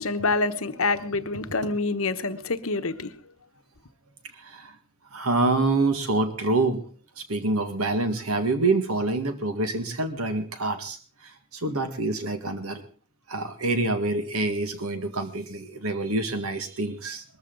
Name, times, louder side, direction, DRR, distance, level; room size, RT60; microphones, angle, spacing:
voice 1, 0.0-3.1, left 3 dB, 70° left, 1.1 m, -26 dB
voice 2, 4.4-4.8 5.1-6.8 7.2-11.0 11.2-12.8 13.3-17.2, right 2 dB, 85° right, 1.9 m, -26 dB
20.5 x 14.0 x 3.9 m
head